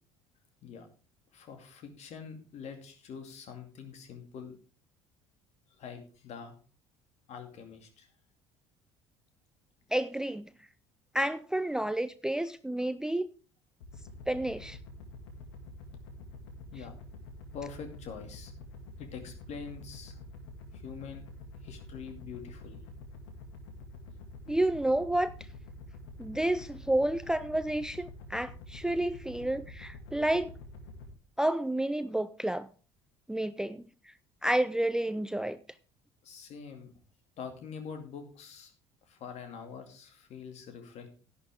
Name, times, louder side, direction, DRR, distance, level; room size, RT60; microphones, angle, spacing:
voice 1, 1.3-4.6 5.7-6.5 7.3-8.1 16.7-16.9 17.5-18.5 19.0-20.2 20.7-21.2 21.6-22.8 36.2-36.9 37.4-38.7 39.1-41.1, left 6 dB, 50° left, 2.3 m, -45 dB
voice 2, 9.9-10.5 11.1-13.3 14.3-14.8 24.5-25.3 26.2-30.5 31.4-32.7 33.3-33.8 34.4-35.6, right 1 dB, 5° right, 0.4 m, -30 dB
sound 1, 13.8-31.1, left 2 dB, 70° left, 2.0 m, -47 dB
11.0 x 10.5 x 3.6 m
figure-of-eight pair, 60°, 14 cm